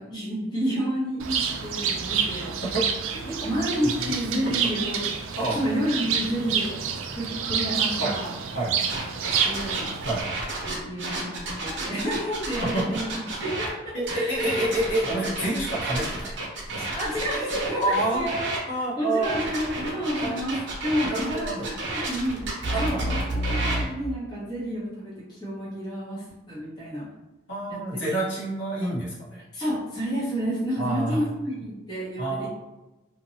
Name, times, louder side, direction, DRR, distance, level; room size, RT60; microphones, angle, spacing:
voice 1, 0.1-2.5 3.4-5.1 5.5-6.7 7.1-8.3 9.2-9.9 10.6-13.1 13.4-14.5 17.0-18.5 19.0-20.6 20.8-21.5 21.9-22.4 22.8-27.1 27.7-28.2 29.5-32.5, equal, 20° left, -8 dB, 0.8 m, -30 dB
Bird, 1.2-10.2, right 7 dB, 80° right, 0.3 m, -28 dB
voice 2, 3.8-4.1 4.4-4.5 5.4-5.6 8.0-8.2 8.5-8.7 10.0-10.2 12.6-12.9 13.9-16.4 16.7-16.9 17.8-18.3 18.7-19.4 20.2-20.4 21.0-21.7 22.7-23.1 27.5-29.4 30.8-31.2 32.2-32.5, right 1 dB, 60° left, -6 dB, 1.0 m, -28 dB
sound 1, 8.9-13.7 14.0-18.6 19.2-23.9, right 2 dB, 60° right, 0.7 m, -31 dB
2.7 x 2.2 x 2.7 m, 1.0 s
head